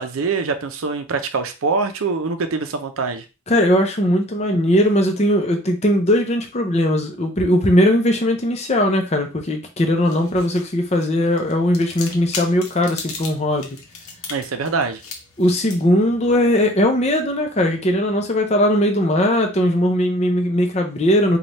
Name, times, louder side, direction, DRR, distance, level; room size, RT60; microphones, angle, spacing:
voice 1, 0.0-3.3 14.3-15.0, right 4 dB, 70° right, 0.6 m, -24 dB
voice 2, 3.5-13.8 15.4-21.4, left 1 dB, 30° left, 0.6 m, -19 dB
sound 1, 9.8-18.2, left 4 dB, 75° left, 0.8 m, -38 dB
3.3 x 2.3 x 4.0 m
head